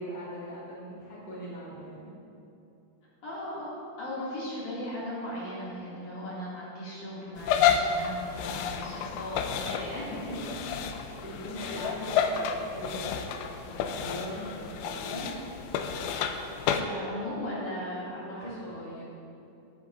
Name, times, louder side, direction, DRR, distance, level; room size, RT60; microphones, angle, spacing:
voice 1, 0.0-2.1 10.0-10.5 11.0-13.4 13.6-15.3 18.2-19.0, equal, 15° left, -7 dB, 2.3 m, -40 dB
voice 2, 3.2-10.0 11.6-11.8 16.7-18.5, left 1 dB, 50° left, -8 dB, 3.3 m, -37 dB
sound 1, 7.4-16.8, left 7 dB, 85° left, 2.7 m, -30 dB
19.5 x 9.9 x 2.6 m, 2.8 s
omnidirectional pair, 5.2 m